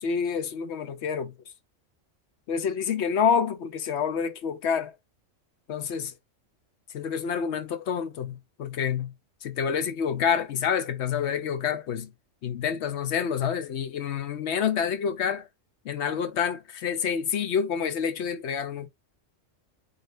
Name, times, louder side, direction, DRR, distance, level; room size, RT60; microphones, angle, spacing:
voice 1, 0.0-1.3 2.5-4.9 5.7-6.1 6.9-9.1 9.4-12.1 12.4-15.5 15.8-18.9, left 7 dB, 65° left, 0.8 m, -28 dB
4.0 x 3.3 x 2.5 m
omnidirectional pair, 1.3 m